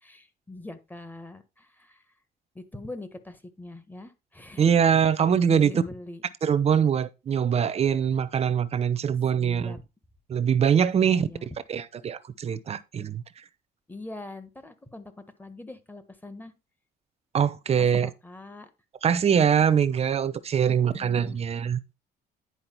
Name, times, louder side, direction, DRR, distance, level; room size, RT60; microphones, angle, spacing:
voice 1, 0.0-2.0 2.5-4.7 5.5-6.2 9.3-9.8 11.0-11.6 13.9-16.5 17.8-18.7 20.7-21.4, left 2 dB, 10° left, 1.4 m, -42 dB
voice 2, 4.6-5.8 6.4-9.8 10.3-11.3 11.7-13.2 17.3-18.1 19.0-21.8, right 8 dB, 35° right, 0.9 m, -23 dB
9.9 x 4.8 x 4.5 m
cardioid pair, 110°, 17 cm